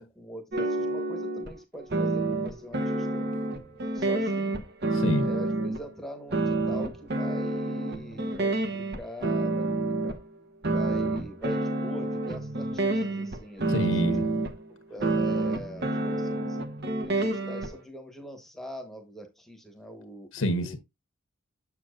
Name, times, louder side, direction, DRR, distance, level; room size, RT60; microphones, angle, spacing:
voice 1, 0.0-3.3 3.9-4.7 5.2-10.2 10.7-14.0 14.7-16.6 17.0-20.8, equal, ahead, 1.2 m, -43 dB
sound 1, 0.5-1.6 1.9-5.8 6.3-10.2 10.6-14.6 15.0-17.7, right 2 dB, 50° right, 1.0 m, -28 dB
voice 2, 4.9-5.3 13.7-14.3 20.3-20.8, equal, 75° left, 1.1 m, -27 dB
7.3 x 6.9 x 2.5 m
head